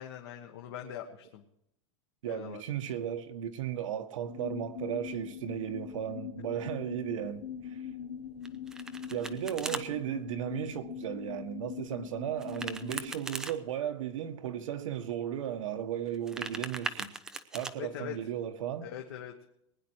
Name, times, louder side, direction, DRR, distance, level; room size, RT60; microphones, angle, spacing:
voice 1, 0.0-1.4 2.2-2.6 17.7-18.1 18.8-19.3, left 11 dB, 50° left, 1.4 m, -42 dB
voice 2, 2.2-7.8 9.1-17.1 17.5-18.9, right 10 dB, 85° right, 1.7 m, -35 dB
sound 1, 4.3-13.1, left 8 dB, 75° left, 1.2 m, -42 dB
Domestic sounds home sounds, 8.4-9.8 12.4-13.5 16.1-17.7, right 2 dB, 5° right, 0.4 m, -39 dB
20.0 x 10.0 x 4.7 m
supercardioid pair, 180°, 16 cm